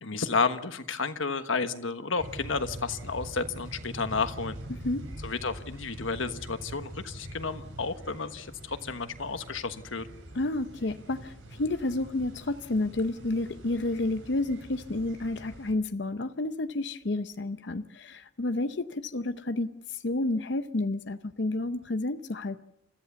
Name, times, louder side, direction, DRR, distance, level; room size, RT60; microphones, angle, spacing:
voice 1, 0.0-4.6 5.2-10.1, left 4 dB, 80° left, 10 dB, 1.3 m, -31 dB
sound 1, 2.2-15.7, right 1 dB, 85° right, 6.7 m, -44 dB
voice 2, 4.7-5.1 10.3-19.7 20.0-22.6, left 2 dB, 60° left, 10 dB, 0.7 m, -30 dB
29.5 x 14.0 x 7.0 m, 0.79 s
head